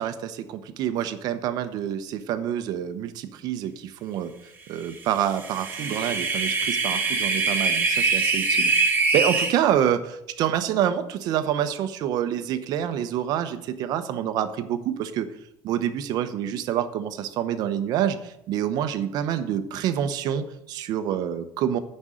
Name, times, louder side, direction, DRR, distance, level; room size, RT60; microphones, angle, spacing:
voice 1, 0.0-4.3 4.7-8.7 9.1-15.3 15.6-21.8, right 10 dB, 60° right, 11 dB, 0.9 m, -27 dB
sound 1, 5.2-9.5, right 4 dB, 25° right, 1.6 m, -23 dB
10.0 x 5.4 x 7.6 m, 0.84 s
cardioid pair, 165°, 8 cm